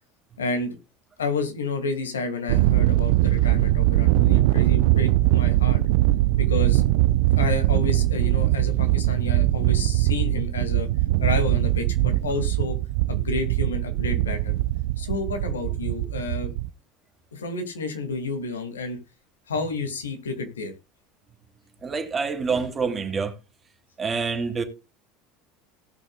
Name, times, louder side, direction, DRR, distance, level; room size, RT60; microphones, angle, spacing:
voice 1, 0.4-0.7 1.2-5.8 6.4-6.8 7.4-10.9 11.2-12.8 13.1-14.6 15.0-16.5 17.3-19.0 19.5-20.7, left 4 dB, 90° left, 2.3 m, -30 dB
Thunder, 2.5-16.7, right 17 dB, 70° right, 0.5 m, -21 dB
voice 2, 21.8-23.4 24.0-24.6, right 5 dB, 25° right, 2.8 m, -26 dB
18.5 x 6.3 x 2.3 m
hypercardioid pair, 80°, 0 cm